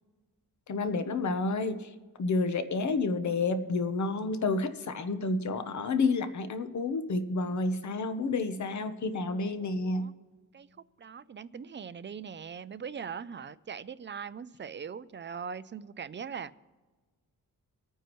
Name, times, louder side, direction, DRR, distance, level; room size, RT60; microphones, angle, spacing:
voice 1, 0.7-10.1, left 3 dB, 55° left, 10 dB, 0.9 m, -30 dB
voice 2, 9.6-10.1 10.5-10.7 11.0-16.5, right 6 dB, 35° right, 15 dB, 0.4 m, -41 dB
25.5 x 9.1 x 3.1 m, 1.3 s
wide cardioid pair, 160°, 34 cm